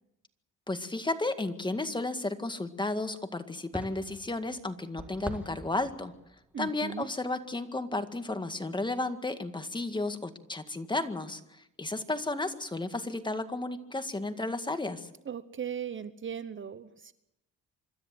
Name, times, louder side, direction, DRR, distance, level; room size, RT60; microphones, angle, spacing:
voice 1, 0.7-6.1 6.6-15.1, left 2 dB, 15° left, 8 dB, 1.9 m, -33 dB
sound 1, 3.7-7.2 7.6-7.7, right 1 dB, 5° right, 2.0 m, -44 dB
voice 2, 6.5-7.1 15.3-17.1, right 8 dB, 40° right, 14 dB, 0.9 m, -38 dB
26.0 x 13.5 x 7.8 m, 0.85 s
cardioid pair, 90°, 30 cm